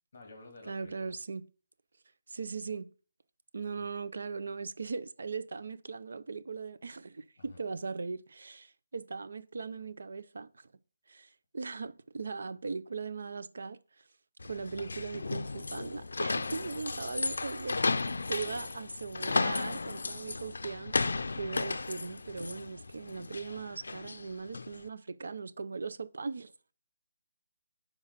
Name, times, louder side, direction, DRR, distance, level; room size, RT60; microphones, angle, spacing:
voice 1, 0.1-1.1 3.8-3.9 7.4-7.6 16.3-17.2 18.2-18.7, left 2 dB, 30° left, 2.1 m, -52 dB
voice 2, 0.7-1.4 2.3-2.9 3.5-10.7 11.1-14.0 14.4-26.5, right 4 dB, 60° right, 0.5 m, -39 dB
sound 1, 14.4-24.8, left 3 dB, 85° left, 0.4 m, -34 dB
5.6 x 4.7 x 5.0 m
hypercardioid pair, 180°, 0 cm